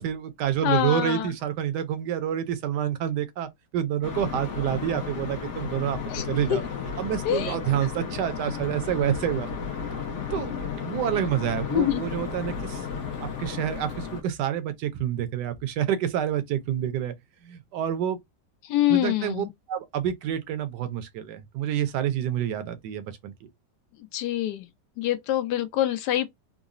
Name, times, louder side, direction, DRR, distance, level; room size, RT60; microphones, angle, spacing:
voice 1, 0.0-6.0 6.3-6.6 7.0-9.5 10.3-12.8 13.2-17.1 17.4-18.2 18.9-23.3, right 10 dB, 75° right, 1.2 m, -28 dB
voice 2, 0.6-1.3 6.1-6.2 6.5-6.6 7.2-7.6 11.7-12.0 18.6-19.5 24.1-24.7 25.0-26.3, left 12 dB, 75° left, 1.1 m, -25 dB
sound 1, 4.0-14.2, left 6 dB, 55° left, 0.9 m, -33 dB
3.8 x 2.0 x 2.4 m
omnidirectional pair, 1.9 m